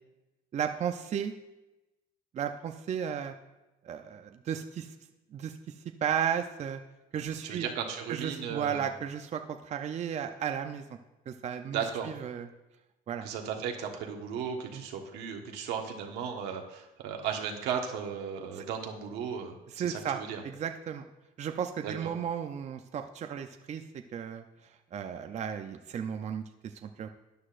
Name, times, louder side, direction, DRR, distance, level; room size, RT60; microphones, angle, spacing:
voice 1, 0.5-1.3 2.3-3.3 3.8-4.9 5.3-5.7 6.0-6.8 7.1-7.7 8.1-10.8 11.3-12.5 13.1-13.3 14.7-14.8 18.6-18.7 19.7-21.1 21.4-24.4 24.9-27.1, right 8 dB, 40° right, 6 dB, 0.6 m, -34 dB
voice 2, 7.4-8.9 11.7-12.1 13.2-20.4 21.8-22.1, right 7 dB, 90° right, 2 dB, 1.4 m, -35 dB
12.5 x 9.7 x 2.5 m, 1.0 s
cardioid pair, 110°, 17 cm